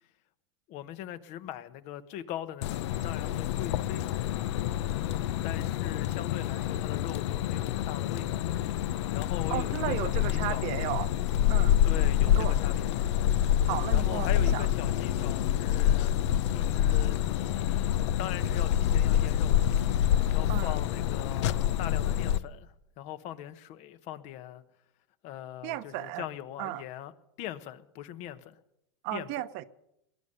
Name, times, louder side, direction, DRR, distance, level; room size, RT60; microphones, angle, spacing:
voice 1, 0.7-4.8 5.4-8.4 9.1-10.7 11.8-13.1 13.9-16.1 16.5-19.7 20.3-24.6 25.2-27.1 27.4-28.6 29.1-29.3, left 12 dB, 50° left, 1.1 m, -41 dB
sound 1, 2.6-22.4, left 11 dB, 70° left, 0.7 m, -27 dB
voice 2, 9.5-11.1 11.5-11.7 12.3-12.6 13.6-14.7 20.5-20.7 25.6-26.3 26.6-26.8 29.0-29.6, right 16 dB, 55° right, 1.0 m, -34 dB
20.5 x 9.7 x 6.7 m
supercardioid pair, 115°, 15 cm